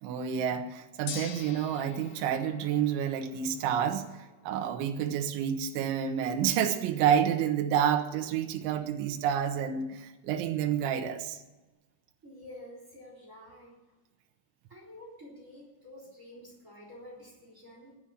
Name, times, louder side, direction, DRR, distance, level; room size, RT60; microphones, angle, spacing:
voice 1, 0.0-11.4, right 8 dB, 80° right, 4 dB, 3.3 m, -29 dB
Gong, 1.1-11.3, left 7 dB, 90° left, 4.0 m, -50 dB
voice 2, 12.2-13.8 14.7-17.9, left 1 dB, 20° right, -2 dB, 3.5 m, -49 dB
10.0 x 9.8 x 9.9 m, 1.1 s
omnidirectional pair, 5.6 m